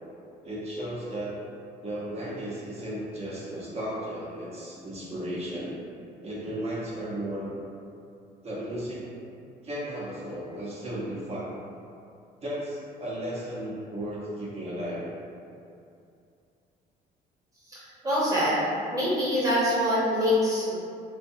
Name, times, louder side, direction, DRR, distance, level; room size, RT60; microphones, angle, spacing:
voice 1, 0.4-1.3 1.8-5.8 6.2-7.5 8.4-9.1 9.6-11.5 12.4-15.1, right 1 dB, 40° right, -6 dB, 0.6 m, -34 dB
voice 2, 17.7-18.6 18.9-20.7, equal, 20° right, -8 dB, 0.9 m, -25 dB
2.6 x 2.2 x 2.6 m, 2.5 s
cardioid pair, 110°, 17 cm